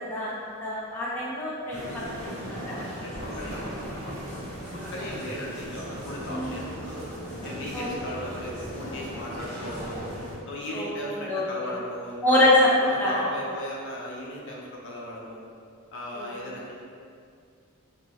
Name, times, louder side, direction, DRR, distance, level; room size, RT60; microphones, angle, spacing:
voice 1, 0.0-2.8 6.3-6.5 7.7-7.9 10.7-11.0 11.2-11.4 12.2-12.7 13.0-13.1 16.1-16.3, left 1 dB, 10° left, -8 dB, 0.5 m, -25 dB
sound 1, 1.7-10.4, equal, 70° right, 1.2 m, -37 dB
voice 2, 2.9-4.2 4.9-7.1 7.4-10.0 10.5-12.5 12.8-15.4 15.9-16.8, left 1 dB, 60° left, -4 dB, 0.5 m, -37 dB
2.8 x 2.7 x 3.0 m, 2.4 s
head